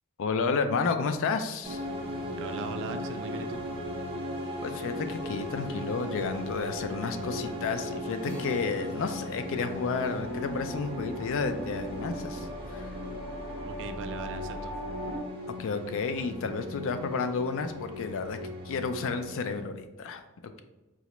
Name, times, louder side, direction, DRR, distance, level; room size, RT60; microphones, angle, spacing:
voice 1, 0.2-1.8 4.6-12.9 15.6-18.4 18.6-20.2, left 4 dB, 60° left, 9 dB, 0.3 m, -31 dB
sound 1, 1.6-19.6, left 1 dB, 25° right, 0.7 m, -38 dB
voice 2, 2.4-3.6 13.7-14.7, right 5 dB, 55° right, 8 dB, 0.3 m, -39 dB
sound 2, 8.2-14.9, left 1 dB, 30° left, 0.7 m, -51 dB
sound 3, 10.2-15.2, right 1 dB, 90° left, 0.8 m, -39 dB
4.7 x 2.1 x 3.0 m, 1.1 s
head